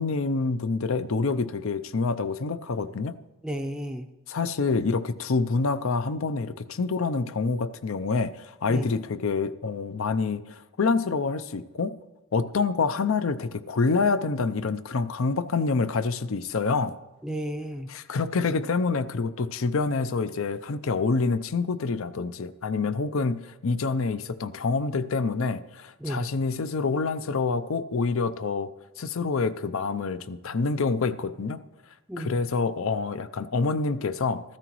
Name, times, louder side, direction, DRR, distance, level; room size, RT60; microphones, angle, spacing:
voice 1, 0.0-3.2 4.3-12.0 12.3-17.0 17.9-28.7 29.0-31.6 32.2-34.4, left 4 dB, 65° left, 14 dB, 0.5 m, -27 dB
voice 2, 3.4-4.1 8.7-8.9 17.2-17.9 26.0-26.3 32.1-32.5, equal, 5° right, 3 dB, 0.5 m, -33 dB
15.0 x 13.0 x 3.1 m, 1.0 s
head